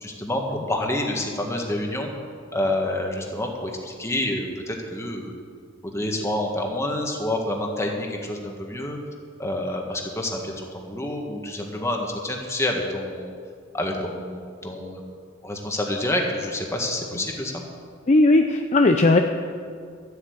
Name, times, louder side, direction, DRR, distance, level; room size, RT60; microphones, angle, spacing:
voice 1, 0.0-2.1 2.5-5.3 5.9-9.0 9.4-13.3 13.7-15.1 15.4-17.6, left 1 dB, 15° left, 1 dB, 1.6 m, -28 dB
voice 2, 18.1-19.2, left 2 dB, 35° left, 5 dB, 0.5 m, -17 dB
12.5 x 8.4 x 8.0 m, 2.2 s
head